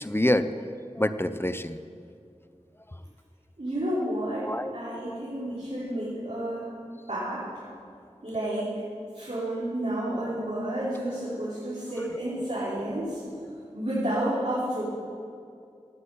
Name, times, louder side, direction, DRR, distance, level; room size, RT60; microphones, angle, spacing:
voice 1, 0.0-1.8 4.4-4.7 5.1-5.2, left 1 dB, 20° left, 11 dB, 0.7 m, -27 dB
voice 2, 3.6-6.7 7.1-7.4 8.2-8.9 9.1-13.2 13.7-14.8, right 1 dB, 65° right, -10 dB, 4.9 m, -30 dB
17.5 x 9.0 x 8.8 m, 2.4 s
wide cardioid pair, 45°, 12 cm